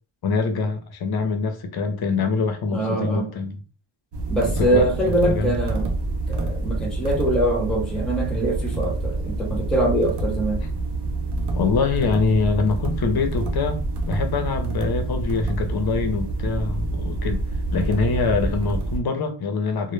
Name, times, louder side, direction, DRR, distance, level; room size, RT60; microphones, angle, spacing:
voice 1, 0.2-3.6 4.6-4.9 5.2-5.6 11.5-13.8 14.1-17.4 17.7-19.9, left 4 dB, 50° left, 0.5 m, -24 dB
voice 2, 2.7-3.3 4.3-6.0 6.3-10.6, right 1 dB, ahead, 0.6 m, -23 dB
sound 1, 4.1-19.0, right 2 dB, 55° right, 0.5 m, -27 dB
2.0 x 2.0 x 3.1 m
wide cardioid pair, 140°, 48 cm